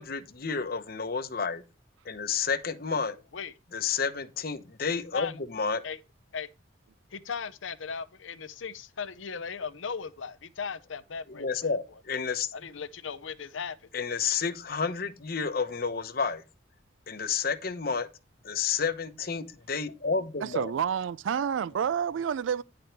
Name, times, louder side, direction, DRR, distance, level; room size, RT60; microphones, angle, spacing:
voice 1, 0.0-1.6 2.0-3.2 3.7-5.8 11.3-12.5 13.9-16.4 17.1-18.1 18.4-20.7, left 5 dB, 50° left, 0.9 m, -30 dB
voice 2, 7.1-11.8 12.5-13.8, left 6 dB, 90° left, 0.7 m, -37 dB
voice 3, 20.4-22.6, right 8 dB, 80° right, 0.3 m, -29 dB
10.5 x 5.1 x 4.5 m
head